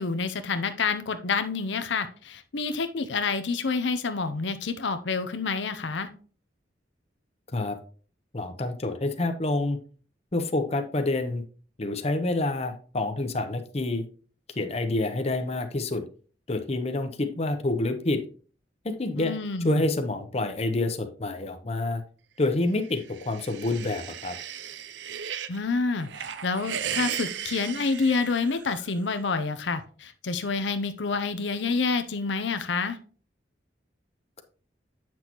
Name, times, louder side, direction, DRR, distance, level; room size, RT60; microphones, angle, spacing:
voice 1, 0.0-6.1 19.2-19.8 25.5-26.1 26.4-33.0, left 4 dB, 85° left, 9 dB, 0.6 m, -28 dB
voice 2, 8.3-9.8 10.3-11.4 11.8-14.0 14.6-16.0 16.5-18.2 18.8-19.3 19.6-22.0 22.4-24.3, left 2 dB, 35° left, 7 dB, 0.8 m, -27 dB
sound 1, 22.9-25.6 26.0-28.9, right 9 dB, 80° right, 0.5 m, -36 dB
8.3 x 6.1 x 3.0 m, 0.41 s
head